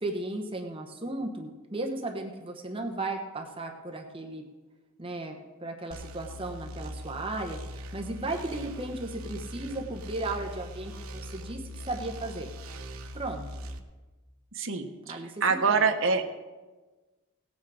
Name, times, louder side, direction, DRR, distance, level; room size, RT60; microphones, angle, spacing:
voice 1, 0.0-4.4 5.0-12.5 13.1-13.5 15.1-15.8, right 2 dB, 25° right, 3 dB, 1.0 m, -35 dB
sound 1, 5.9-13.8, equal, 90° right, 1.0 m, -41 dB
voice 2, 14.5-16.2, right 5 dB, 65° right, 5 dB, 1.1 m, -26 dB
17.5 x 8.3 x 4.9 m, 1.3 s
head